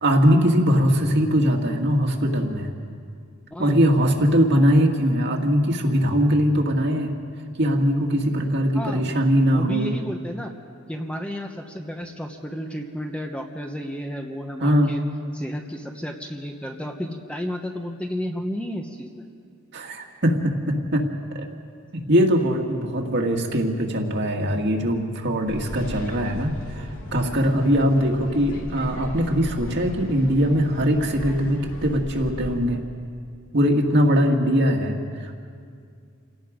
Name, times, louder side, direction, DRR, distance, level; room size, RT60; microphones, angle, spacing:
voice 1, 0.0-2.7 3.6-7.1 7.6-9.9 14.6-14.9 19.7-21.1 21.3-21.5 21.9-32.8 33.5-35.4, equal, 55° right, 2 dB, 2.1 m, -21 dB
voice 2, 3.5-3.8 8.7-9.1 9.4-10.5 10.9-15.0 15.3-19.3, equal, 5° left, 3 dB, 1.1 m, -32 dB
sound 1, 25.5-32.6, equal, 75° left, 2.9 m, -37 dB
28.5 x 17.5 x 5.2 m, 2.3 s
head